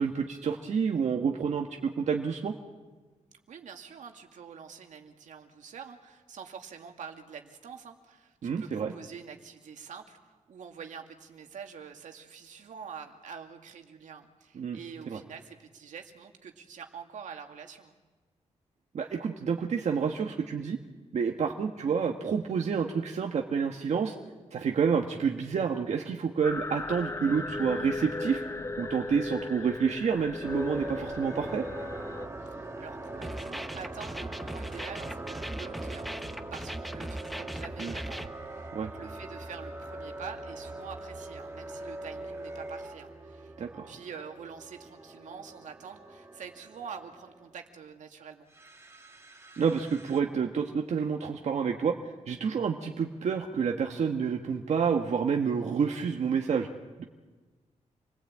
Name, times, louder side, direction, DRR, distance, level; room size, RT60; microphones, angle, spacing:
voice 1, 0.0-2.5 8.4-8.9 14.5-14.8 15.1-15.2 18.9-20.8 21.1-24.1 24.5-28.4 28.8-31.6 37.8-37.9 38.7-38.9 43.6-43.9 49.6-56.7 57.0-57.1, right 6 dB, 65° right, 2 dB, 1.5 m, -29 dB
voice 2, 3.5-18.0 32.4-48.5, right 6 dB, 80° right, 4 dB, 2.3 m, -46 dB
sound 1, 26.4-32.3, left 2 dB, 20° left, 0.9 m, -37 dB
sound 2, 30.4-47.6 48.5-50.2, right 2 dB, 20° right, 2.3 m, -42 dB
sound 3, 33.2-38.3, equal, ahead, 1.1 m, -39 dB
28.0 x 19.5 x 8.7 m, 1.3 s
wide cardioid pair, 115°, 13 cm